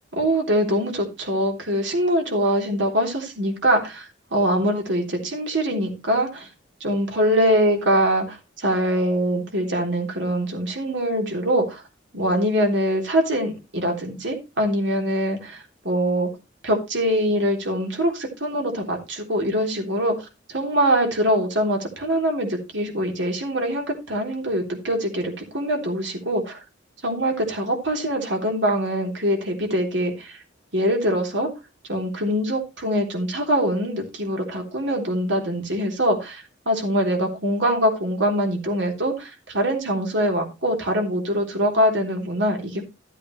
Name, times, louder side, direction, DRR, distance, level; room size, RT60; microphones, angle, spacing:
voice 1, 0.1-6.5 6.8-11.8 12.1-16.3 16.6-26.6 27.0-30.4 30.7-31.5 31.9-42.8, equal, 65° right, 2 dB, 3.5 m, -23 dB
13.5 x 8.3 x 3.2 m, 0.26 s
head